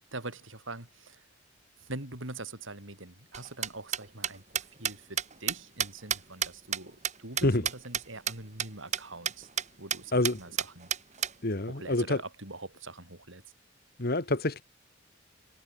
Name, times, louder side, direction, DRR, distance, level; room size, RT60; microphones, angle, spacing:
voice 1, 0.1-1.2 1.8-9.5 9.8-10.9 11.7-13.4, right 2 dB, 75° right, 5.6 m, -43 dB
sound 1, 3.3-8.0 8.3-8.4 8.6-8.7 8.9-9.0 9.3-9.6 9.9-10.0 10.2-11.3, right 8 dB, 35° right, 3.6 m, -30 dB
voice 2, 11.4-12.2 14.0-14.6, left 2 dB, 50° left, 1.5 m, -27 dB
head